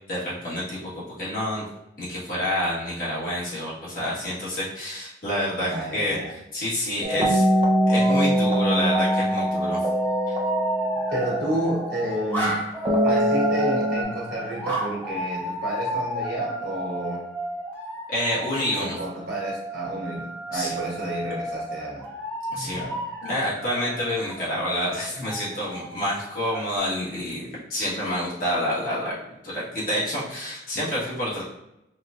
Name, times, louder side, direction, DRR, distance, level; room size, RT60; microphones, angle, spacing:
voice 1, 0.1-1.6 2.0-6.2 6.5-7.4 7.9-9.8 18.1-19.0 20.5-20.8 22.5-22.8 23.2-29.1 29.4-31.4, left 1 dB, 50° left, -8 dB, 1.4 m, -28 dB
voice 2, 5.6-6.3 7.1-7.2 11.1-12.6 13.0-17.2 18.7-22.0 22.5-23.0, right 1 dB, 60° right, -4 dB, 1.4 m, -30 dB
sound 1, 7.0-12.1 12.9-14.0, right 1 dB, 30° right, 0.4 m, -23 dB
sound 2, 7.8-26.8, right 1 dB, 10° left, 0.8 m, -33 dB
4.6 x 2.3 x 2.5 m, 0.87 s
head